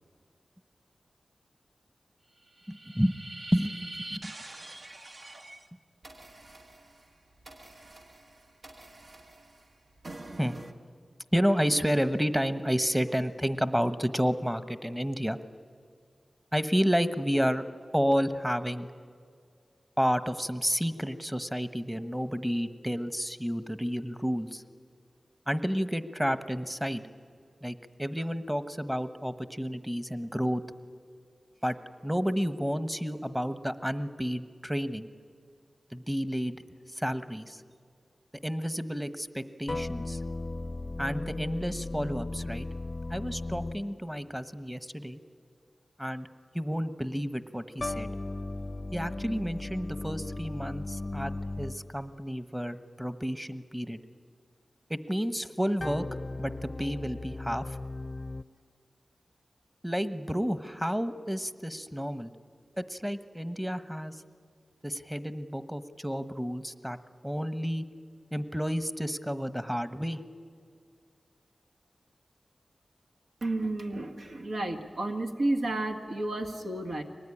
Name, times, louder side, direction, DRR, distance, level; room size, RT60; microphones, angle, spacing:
sound 1, 2.4-5.7 6.0-10.7, right 2 dB, 60° right, 1.4 m, -45 dB
voice 1, 2.7-3.1 3.5-3.8 4.1-4.3 10.3-10.6 11.3-15.4 16.5-17.6 17.9-18.9 20.0-24.6 25.5-27.0 27.6-30.6 31.6-31.8 32.0-35.1 35.9-36.6 36.9-37.6 38.4-40.2 41.0-42.7 43.1-45.2 46.0-46.3 46.5-48.1 48.9-54.0 54.9-56.0 56.4-57.8 59.8-62.3 62.8-64.2 64.8-67.0 67.2-67.8 68.3-70.2, equal, 10° right, 12 dB, 1.2 m, -30 dB
sound 2, 39.7-44.3 47.8-52.1 55.8-58.4, left 2 dB, 40° left, 0.5 m, -36 dB
voice 2, 73.4-77.0, right 2 dB, 80° right, 3 dB, 1.8 m, -31 dB
23.5 x 19.5 x 10.0 m, 2.1 s
cardioid pair, 40°, 0 cm